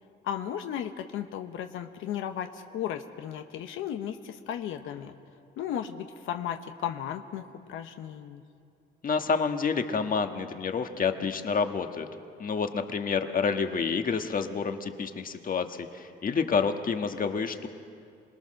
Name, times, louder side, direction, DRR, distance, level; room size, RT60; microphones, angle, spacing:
voice 1, 0.2-5.1 5.6-8.4, left 9 dB, 90° left, 6 dB, 1.0 m, -35 dB
voice 2, 9.0-12.1 12.4-17.7, left 5 dB, 45° left, 6 dB, 1.5 m, -28 dB
27.0 x 19.5 x 6.5 m, 2.4 s
cardioid pair, 90°, 20 cm